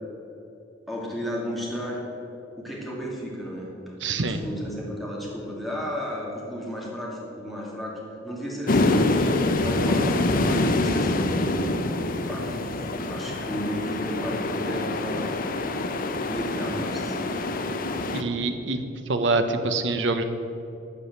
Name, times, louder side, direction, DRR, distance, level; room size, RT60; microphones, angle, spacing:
voice 1, 0.9-2.1 2.6-3.8 4.1-9.3 9.6-15.3 16.3-17.3, equal, ahead, -5 dB, 2.3 m, -34 dB
voice 2, 4.0-4.4 18.1-18.8 19.1-20.2, right 3 dB, 65° right, 8 dB, 0.9 m, -25 dB
sound 1, 8.7-18.2, left 2 dB, 45° left, 0.6 m, -25 dB
12.5 x 5.0 x 8.5 m, 2.8 s
head